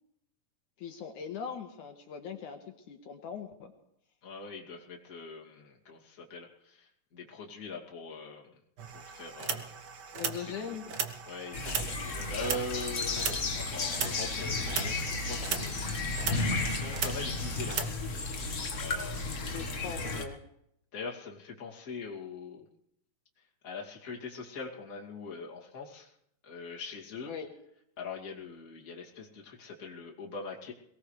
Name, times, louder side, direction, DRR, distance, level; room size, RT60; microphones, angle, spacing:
voice 1, 0.8-3.7 10.1-10.8 19.5-20.4 27.3-27.5, left 7 dB, 70° left, 3 dB, 2.7 m, -41 dB
voice 2, 4.2-8.5 8.9-9.7 10.3-11.0 11.2-19.8 20.9-22.7 23.4-26.1 26.4-27.3 28.0-30.7, left 3 dB, 25° left, -2 dB, 2.5 m, -43 dB
sound 1, 8.8-17.9, right 6 dB, 90° right, 0.9 m, -38 dB
sound 2, 11.5-20.2, left 3 dB, 50° left, 0.9 m, -33 dB
23.0 x 18.0 x 3.3 m, 0.74 s
omnidirectional pair, 3.8 m